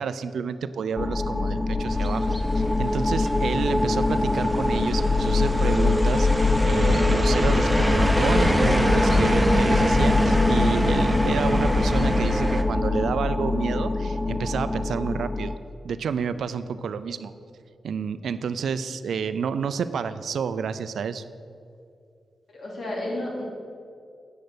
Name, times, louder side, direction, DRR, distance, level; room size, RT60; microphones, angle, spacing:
voice 1, 0.0-15.5 15.8-17.3 17.8-21.2, right 6 dB, 80° right, 12 dB, 0.4 m, -30 dB
sound 1, 1.0-15.6, left 2 dB, 20° left, 0.4 m, -23 dB
sound 2, 1.9-12.6, equal, 5° right, 0.7 m, -26 dB
voice 2, 22.5-23.4, left 1 dB, 65° left, -3 dB, 2.7 m, -32 dB
8.9 x 6.5 x 6.7 m, 2.4 s
cardioid pair, 95°, 0 cm